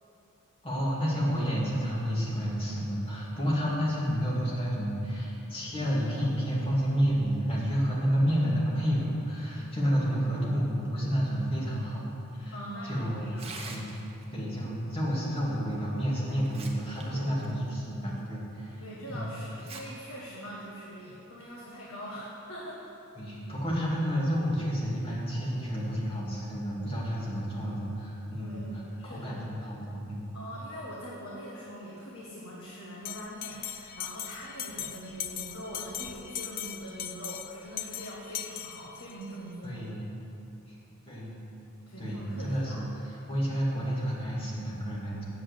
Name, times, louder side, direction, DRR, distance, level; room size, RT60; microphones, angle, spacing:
voice 1, 0.6-12.6 12.8-13.3 13.7-13.9 14.3-19.3 23.2-30.3 39.6-40.1 40.7-40.8 41.1-41.4 42.0-45.3, equal, 25° left, -6 dB, 2.4 m, -30 dB
voice 2, 12.5-13.6 17.0-17.3 18.8-22.8 28.4-28.7 29.0-29.4 30.3-39.8 41.9-42.8, equal, 75° left, -5 dB, 1.5 m, -42 dB
Tearing, 13.3-14.2 15.7-15.8 16.3-17.0 17.4-17.5 18.2-18.3 19.5-19.8 20.2-20.3 21.2-21.4, right 4 dB, 30° right, 1.0 m, -44 dB
Bell, 33.0-39.3, left 10 dB, 40° left, 0.4 m, -39 dB
7.9 x 7.8 x 8.0 m, 2.8 s
head